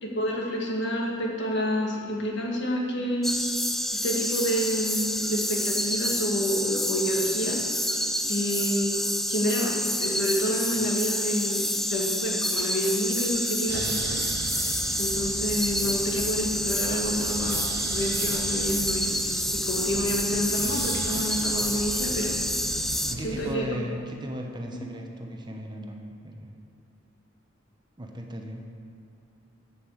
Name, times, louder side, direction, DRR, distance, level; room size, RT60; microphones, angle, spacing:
voice 1, 0.0-3.3 3.9-7.6 8.3-9.7 10.0-14.2 15.0-19.1 19.5-22.4 23.2-23.8, equal, 65° left, -2 dB, 2.0 m, -29 dB
sound 1, 3.2-23.2, equal, ahead, 0.4 m, -28 dB
sound 2, 13.7-23.6, right 5 dB, 55° right, 0.5 m, -36 dB
voice 2, 23.1-26.5 28.0-28.6, right 1 dB, 25° right, 2 dB, 0.9 m, -36 dB
8.2 x 7.8 x 7.2 m, 2.7 s
head